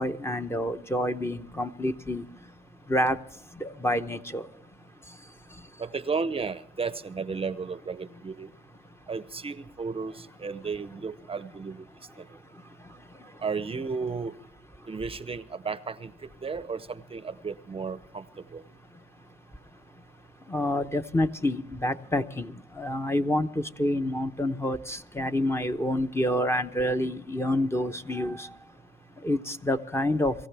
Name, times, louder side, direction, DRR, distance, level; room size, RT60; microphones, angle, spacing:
voice 1, 0.0-2.2 2.9-3.2 3.6-4.5 20.5-28.5 29.2-30.3, left 1 dB, 15° left, 8 dB, 0.7 m, -28 dB
voice 2, 5.8-8.5 9.1-11.8 12.2-12.3 13.4-14.3 14.9-18.2 18.5-18.6, right 5 dB, 30° right, 14 dB, 0.6 m, -33 dB
24.0 x 14.5 x 3.4 m, 0.66 s
cardioid pair, 90°, 20 cm